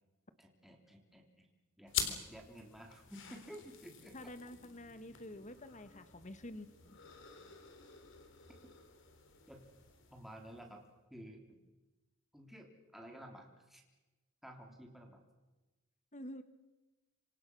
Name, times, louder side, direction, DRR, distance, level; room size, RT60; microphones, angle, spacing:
voice 1, 0.4-1.5 1.8-4.1 9.5-9.6 10.1-10.8 11.1-11.6 12.3-13.8 14.4-15.2, equal, ahead, 1 dB, 3.5 m, -53 dB
sound 1, 1.9-10.9, left 8 dB, 60° left, 3.6 m, -46 dB
voice 2, 4.1-7.0 16.1-16.4, left 1 dB, 35° left, 11 dB, 1.6 m, -48 dB
27.5 x 26.0 x 6.3 m, 1.1 s
head